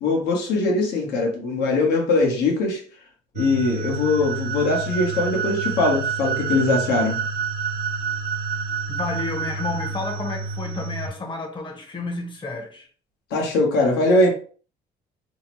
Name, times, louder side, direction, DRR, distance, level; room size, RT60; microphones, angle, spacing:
voice 1, 0.0-2.8 3.3-7.2 13.3-14.3, left 2 dB, 85° left, 0.9 m, -21 dB
sound 1, 3.4-11.1, right 5 dB, 75° right, 0.5 m, -28 dB
voice 2, 8.9-12.9, left 3 dB, 30° left, 0.7 m, -31 dB
2.8 x 2.0 x 2.9 m
cardioid pair, 110°, 17 cm